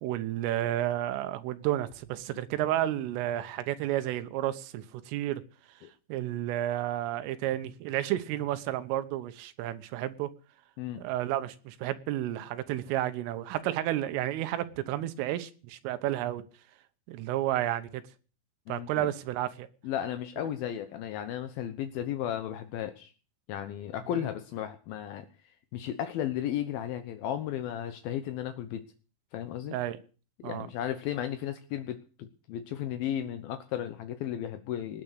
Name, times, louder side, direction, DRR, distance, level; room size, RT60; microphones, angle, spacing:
voice 1, 0.0-5.4 6.1-10.3 11.0-16.4 17.1-18.0 18.7-19.7 29.7-30.0 30.4-30.7, right 13 dB, 85° right, 11 dB, 3.6 m, -31 dB
voice 2, 18.7-19.1 19.8-23.1 23.5-25.3 25.7-28.8 29.3-29.8 30.4-35.0, left 11 dB, 85° left, 9 dB, 2.1 m, -34 dB
19.0 x 8.4 x 8.1 m, 0.39 s
omnidirectional pair, 5.7 m